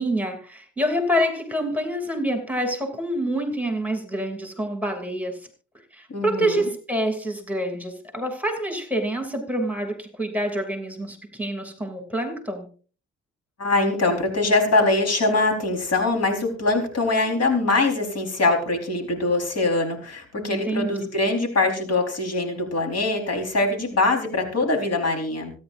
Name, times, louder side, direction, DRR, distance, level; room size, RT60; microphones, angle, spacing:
voice 1, 0.0-5.4 5.9-12.7 20.5-20.9, equal, 5° right, 4 dB, 2.7 m, -27 dB
voice 2, 6.1-6.7 13.6-25.5, left 2 dB, 55° left, 4 dB, 4.3 m, -23 dB
25.5 x 9.8 x 2.6 m, 0.39 s
cardioid pair, 90°, 30 cm